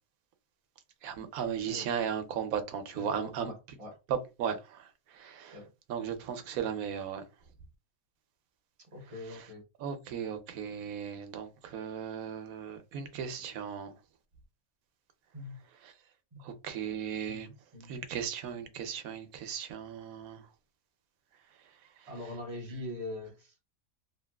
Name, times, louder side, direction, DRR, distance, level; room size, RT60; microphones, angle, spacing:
voice 1, 1.0-3.8 4.1-5.6 5.9-7.2 9.2-9.5 9.8-13.9 15.8-15.9 16.4-17.5 17.9-20.4 22.0-22.1, right 8 dB, 85° right, 1.1 m, -36 dB
voice 2, 2.9-4.0 5.5-5.7 8.9-9.6 15.3-15.6 16.3-16.4 17.3-18.0 22.1-23.6, left 1 dB, 30° right, 0.7 m, -43 dB
2.9 x 2.6 x 2.2 m
omnidirectional pair, 1.5 m